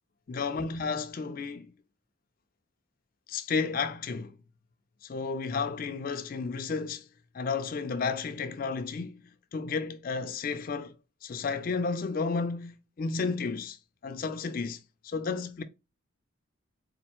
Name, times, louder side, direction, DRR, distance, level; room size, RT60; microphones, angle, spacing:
voice 1, 0.3-1.7 3.3-4.4 5.0-7.1 7.3-9.2 9.5-11.0 11.2-13.8 14.0-15.6, left 4 dB, 40° left, 0.3 m, -32 dB
4.2 x 2.5 x 2.9 m
head